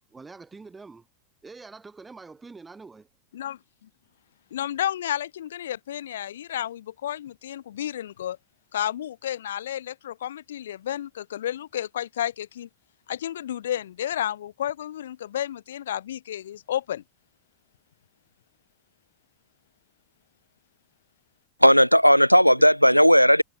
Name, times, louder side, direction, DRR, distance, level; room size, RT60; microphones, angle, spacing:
voice 1, 0.1-1.1 1.4-3.1, right 4 dB, 10° right, 3.2 m, -45 dB
voice 2, 3.3-3.9 4.5-8.4 8.7-12.7 13.1-17.0, left 11 dB, 60° left, 0.9 m, -31 dB
voice 3, 21.6-23.4, equal, 90° left, 0.4 m, -15 dB
figure-of-eight pair, 90°, 0 cm